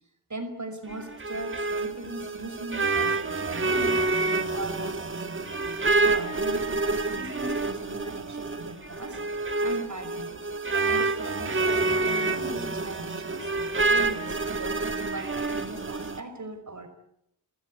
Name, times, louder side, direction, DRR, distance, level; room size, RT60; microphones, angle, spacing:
voice 1, 0.3-4.1 4.5-5.4 6.0-9.2 9.6-10.5 10.8-13.5 13.9-16.9, right 2 dB, 45° right, 7 dB, 5.3 m, -39 dB
sound 1, 0.9-16.2, right 3 dB, 30° right, 1.6 m, -28 dB
29.5 x 15.0 x 9.6 m, 0.78 s
wide cardioid pair, 100°, 39 cm